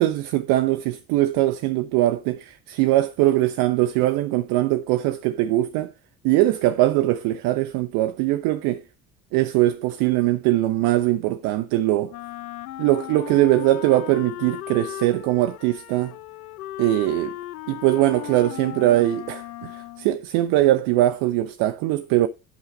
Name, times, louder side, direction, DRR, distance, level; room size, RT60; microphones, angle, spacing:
voice 1, 0.0-5.9 6.2-8.8 9.3-12.1 12.8-16.1 16.8-17.3 17.7-19.7 20.0-22.3, right 15 dB, 50° right, 0.6 m, -21 dB
Wind instrument woodwind instrument, 12.1-20.2, left 15 dB, 75° left, 0.6 m, -37 dB
6.5 x 5.6 x 5.3 m
figure-of-eight pair, 60°, 45 cm